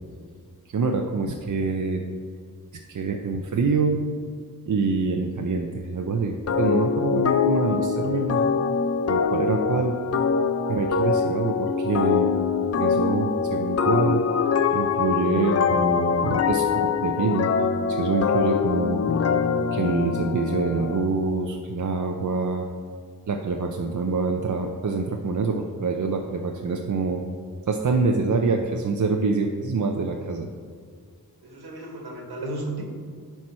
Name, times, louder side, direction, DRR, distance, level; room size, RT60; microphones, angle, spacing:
voice 1, 0.7-2.0 2.9-4.0 4.7-8.4 9.1-10.0 10.7-12.3 12.8-14.2 14.7-17.5 17.9-19.0 19.7-22.7 23.3-27.2 27.7-30.5, right 4 dB, 55° right, 2 dB, 0.6 m, -25 dB
sound 1, 6.5-21.1, left 6 dB, 45° left, 0.4 m, -24 dB
voice 2, 31.4-32.8, right 2 dB, 90° right, 1 dB, 1.4 m, -34 dB
10.5 x 4.5 x 4.3 m, 2.1 s
wide cardioid pair, 65°, 37 cm